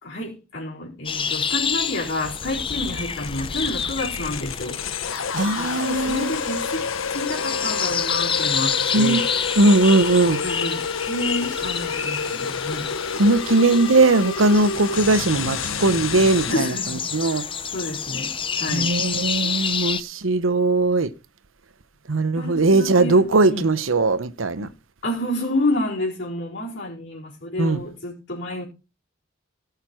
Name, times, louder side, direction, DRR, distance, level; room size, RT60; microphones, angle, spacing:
voice 1, 0.0-4.8 5.1-9.3 10.2-12.9 16.5-17.5 17.7-19.0 22.4-23.7 25.0-28.6, left 1 dB, 60° left, 4.5 m, -29 dB
sound 1, 1.1-20.0, left 7 dB, 25° left, 0.7 m, -29 dB
sound 2, 2.2-16.5, left 6 dB, 85° left, 0.8 m, -29 dB
voice 2, 5.3-6.3 8.9-9.2 9.6-10.4 13.2-17.4 18.7-21.1 22.1-24.7 27.6-27.8, right 2 dB, 80° right, 0.9 m, -19 dB
17.5 x 6.7 x 4.5 m
head